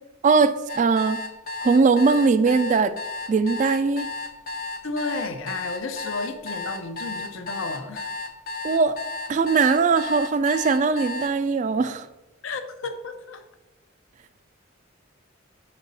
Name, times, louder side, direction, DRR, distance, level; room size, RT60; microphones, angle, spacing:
voice 1, 0.2-1.2 1.6-2.9 3.3-4.1 8.6-9.0 9.3-12.1, right 4 dB, 40° right, 0.3 m, -20 dB
sound 1, 0.7-11.3, left 3 dB, 50° left, 0.7 m, -33 dB
voice 2, 4.8-8.1 12.4-13.4, left 3 dB, 85° left, 0.7 m, -32 dB
6.3 x 5.3 x 4.0 m
head